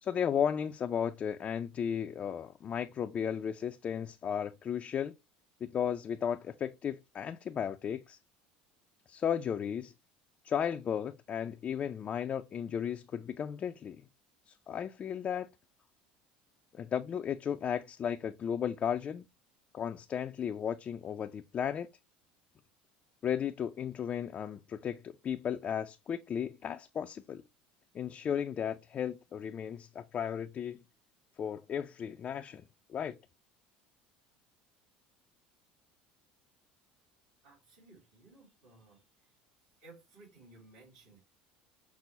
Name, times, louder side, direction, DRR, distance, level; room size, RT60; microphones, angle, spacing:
voice 1, 0.0-5.1 5.6-8.2 9.1-9.9 10.4-14.0 14.5-15.5 16.7-19.2 19.7-21.9 23.2-27.4 27.9-30.8 31.4-32.6 32.9-33.2, left 8 dB, 35° left, 0.3 m, -35 dB
voice 2, 37.4-39.4 39.7-41.2, right 2 dB, 70° right, 2.3 m, -58 dB
5.9 x 2.0 x 4.0 m
supercardioid pair, 90°, 4 cm